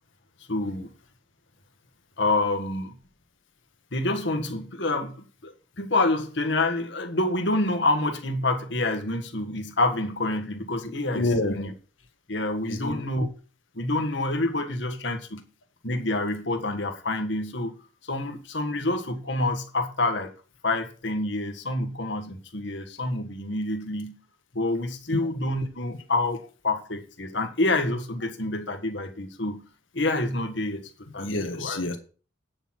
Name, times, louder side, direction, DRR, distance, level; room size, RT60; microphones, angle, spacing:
voice 1, 0.5-0.9 2.2-3.0 3.9-5.2 5.4-11.3 11.6-11.7 12.3-13.3 13.7-15.4 15.8-17.7 18.1-20.3 20.6-24.2 24.5-29.6 29.9-31.8, left 2 dB, 65° left, 1.6 m, -27 dB
voice 2, 11.1-11.7 12.6-13.0 25.1-25.3 31.2-32.0, left 2 dB, 85° left, 1.8 m, -28 dB
9.4 x 6.8 x 5.9 m
head